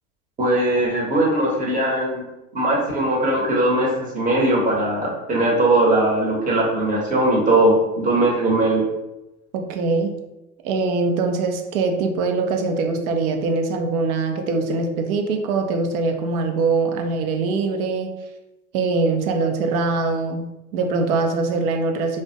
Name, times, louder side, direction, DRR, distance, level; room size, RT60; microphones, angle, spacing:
voice 1, 0.4-2.3 2.5-8.8, right 1 dB, 20° right, -3 dB, 0.7 m, -20 dB
voice 2, 9.5-10.1 10.6-18.1 18.7-22.2, right 3 dB, 75° right, 5 dB, 0.6 m, -22 dB
2.4 x 2.1 x 2.6 m, 0.97 s
hypercardioid pair, 95°, 44 cm